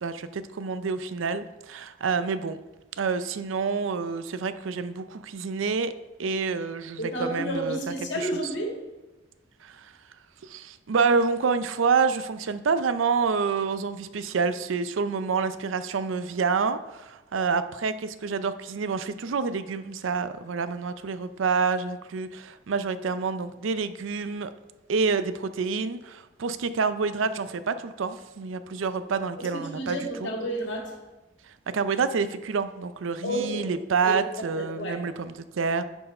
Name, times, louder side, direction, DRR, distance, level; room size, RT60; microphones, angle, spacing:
voice 1, 0.0-2.6 3.0-5.9 6.2-7.8 8.1-8.4 9.6-9.9 10.4-24.5 24.9-30.3 31.7-35.8, right 5 dB, 80° right, 12 dB, 0.5 m, -28 dB
voice 2, 7.0-8.9 29.4-31.0 33.2-33.7 34.0-35.1, right 1 dB, 65° left, 0 dB, 1.9 m, -31 dB
10.5 x 4.6 x 4.3 m, 1.0 s
head